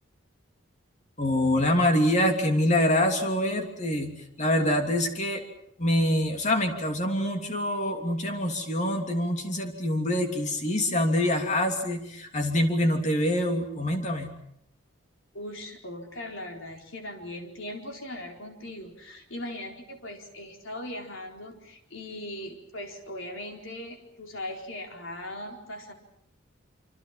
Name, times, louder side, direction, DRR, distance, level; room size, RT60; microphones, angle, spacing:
voice 1, 1.2-4.1 4.4-5.4 5.8-14.3, left 1 dB, 35° left, 4 dB, 3.0 m, -25 dB
voice 2, 15.3-25.9, left 1 dB, 65° left, 2 dB, 4.3 m, -39 dB
26.5 x 25.5 x 5.9 m, 0.72 s
head